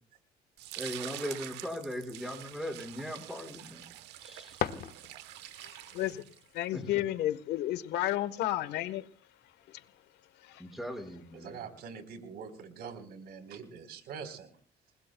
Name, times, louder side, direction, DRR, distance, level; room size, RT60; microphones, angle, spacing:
sound 1, 0.6-6.6, right 14 dB, 90° right, 1.2 m, -46 dB
voice 1, 0.8-3.8 4.2-4.8 6.7-7.0 10.6-11.6, equal, ahead, 3 dB, 5.5 m, -39 dB
sound 2, 4.1-5.6, left 9 dB, 60° left, 1.3 m, -37 dB
voice 2, 5.5-9.1 9.7-9.8 10.4-10.6, left 14 dB, 85° left, 14 dB, 1.3 m, -33 dB
voice 3, 11.3-14.5, right 6 dB, 70° right, 8 dB, 4.1 m, -44 dB
29.5 x 21.0 x 2.3 m, 0.42 s
cardioid pair, 110°, 17 cm